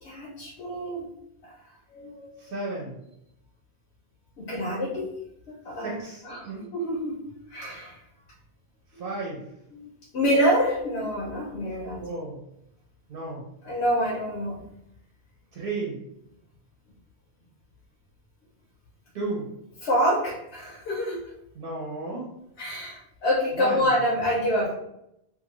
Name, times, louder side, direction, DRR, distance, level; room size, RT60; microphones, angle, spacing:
voice 1, 0.0-1.1 1.5-1.6 1.9-2.3 4.4-5.1 5.5-7.2 7.5-8.0 8.9-9.1 9.7-12.1 13.6-14.6 19.8-21.2 22.6-24.7, equal, 90° left, -4 dB, 0.9 m, -27 dB
voice 2, 2.4-3.0 5.8-6.6 8.9-9.4 12.0-12.4 13.1-13.4 15.5-16.0 19.1-19.5 21.5-22.3 23.5-23.8, right 2 dB, 60° right, -3 dB, 0.9 m, -33 dB
2.6 x 2.4 x 2.9 m, 0.79 s
omnidirectional pair, 1.1 m